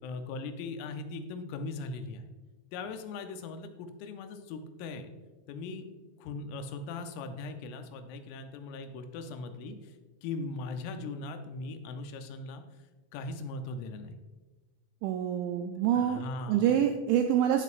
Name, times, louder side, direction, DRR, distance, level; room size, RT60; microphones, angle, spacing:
voice 1, 0.0-2.2 2.7-5.1 5.5-5.9 6.2-9.9 10.2-12.6 13.1-14.2 15.9-16.8, left 3 dB, 90° left, 7 dB, 3.4 m, -39 dB
voice 2, 15.0-16.2 16.5-17.6, right 10 dB, 85° right, 5 dB, 2.6 m, -26 dB
16.0 x 6.2 x 2.5 m, 1.2 s
omnidirectional pair, 5.8 m